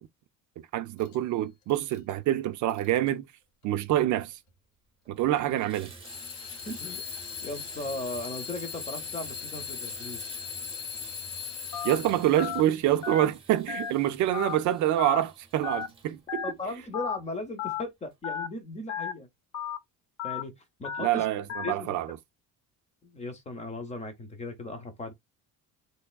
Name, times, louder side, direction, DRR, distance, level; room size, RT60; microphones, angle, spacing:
voice 1, 0.7-3.2 3.6-4.4 5.1-5.9 11.8-16.4 21.0-22.2, right 13 dB, 60° right, 0.5 m, -26 dB
Alarm / Clock, 1.0-1.2 1.7-2.1 2.7-3.1 4.0-4.1 6.0-12.4, left 7 dB, 80° left, 1.0 m, -39 dB
Water tap faucet / Bathtub (filling or washing), 4.5-4.6 5.1-17.5 18.1-18.2 18.7-18.8, right 4 dB, 15° right, 0.9 m, -50 dB
voice 2, 6.3-7.0 7.4-10.3 16.4-19.3 20.2-20.5 20.8-21.3 21.6-22.0 23.0-25.1, left 2 dB, 20° left, 0.7 m, -37 dB
Telephone, 11.7-12.0 12.4-12.6 13.0-13.3 13.7-13.9 14.3-14.6 15.0-15.2 15.6-15.9 16.3-16.5 16.9-17.2 17.6-17.8 18.2-18.5 18.9-19.1 19.5-19.8 20.2-20.4 20.8-21.1 21.5-21.7, left 9 dB, 55° left, 0.7 m, -33 dB
3.5 x 3.2 x 2.2 m
cardioid pair, 170°, 35 cm